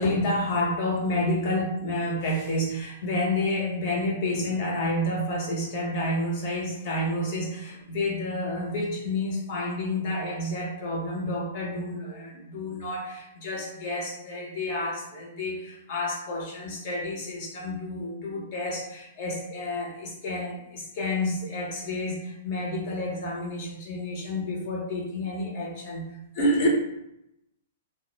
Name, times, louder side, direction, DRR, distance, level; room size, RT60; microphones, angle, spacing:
voice 1, 0.0-26.0 26.3-26.7, left 1 dB, 45° left, -2 dB, 0.8 m, -29 dB
2.2 x 2.1 x 3.0 m, 0.83 s
hypercardioid pair, 150°, 0 cm